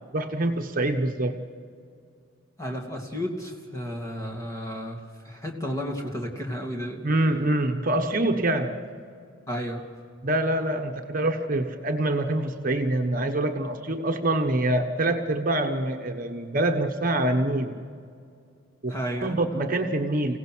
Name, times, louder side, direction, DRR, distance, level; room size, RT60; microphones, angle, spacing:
voice 1, 0.1-1.4 7.0-8.9 10.2-17.8 18.8-20.4, right 1 dB, 40° right, 4 dB, 1.2 m, -25 dB
voice 2, 2.6-7.0 9.5-9.9 18.9-19.6, equal, 15° left, 1 dB, 2.6 m, -33 dB
30.0 x 17.0 x 6.3 m, 2.2 s
head